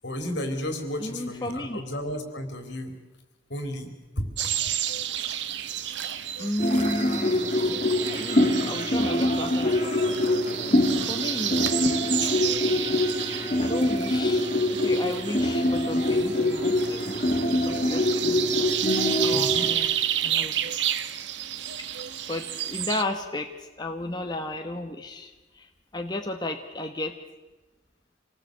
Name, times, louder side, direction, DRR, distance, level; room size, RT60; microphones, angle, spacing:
voice 1, 0.0-2.9 3.5-3.9 4.2-4.3 19.3-19.7, equal, 70° left, 7 dB, 3.9 m, -32 dB
voice 2, 1.0-1.8 6.4-10.2 11.1-11.8 12.2-12.3 12.7-18.8 19.2-20.0 20.2-20.7 21.4-22.0 22.3-27.2, left 1 dB, 25° left, 3 dB, 1.3 m, -34 dB
sound 1, 4.4-23.0, right 10 dB, 70° right, 1.1 m, -31 dB
sound 2, 6.6-19.7, left 1 dB, 40° left, 2.7 m, -25 dB
26.5 x 19.0 x 8.0 m, 1.1 s
head